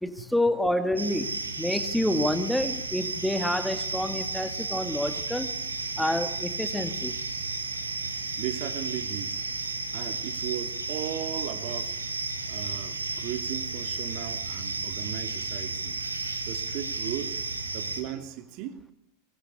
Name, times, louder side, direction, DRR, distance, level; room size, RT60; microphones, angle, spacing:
voice 1, 0.0-5.6 6.0-7.1, left 1 dB, ahead, 2.2 m, -28 dB
sound 1, 1.0-18.0, right 3 dB, 80° right, 3.5 m, -33 dB
voice 2, 8.4-9.4 9.9-12.0 12.5-16.0 16.5-17.4 17.7-18.8, right 12 dB, 40° right, 2.6 m, -36 dB
23.5 x 23.0 x 9.8 m
figure-of-eight pair, 90°, 0 cm